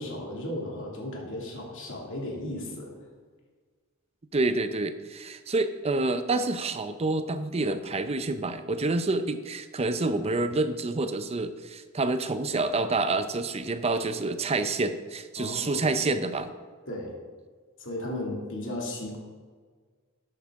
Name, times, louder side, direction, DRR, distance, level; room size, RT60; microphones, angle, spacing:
voice 1, 0.0-2.9 15.4-15.9 16.9-17.1 17.8-19.2, left 1 dB, 65° left, -1 dB, 2.4 m, -35 dB
voice 2, 4.3-16.5, right 2 dB, 30° right, 10 dB, 0.6 m, -28 dB
12.5 x 8.1 x 3.6 m, 1.5 s
head